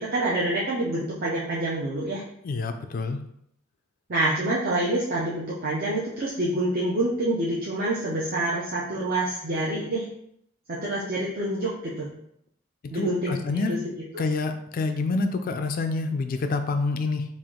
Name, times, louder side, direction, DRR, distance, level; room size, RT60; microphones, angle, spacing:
voice 1, 0.1-2.2 4.1-10.1 10.7-12.1 12.9-13.8 14.1-14.2, right 1 dB, 50° right, -6 dB, 0.6 m, -27 dB
voice 2, 2.4-3.2 12.9-13.7 14.2-17.2, left 3 dB, 45° left, 7 dB, 0.3 m, -27 dB
3.4 x 2.5 x 3.6 m, 0.73 s
head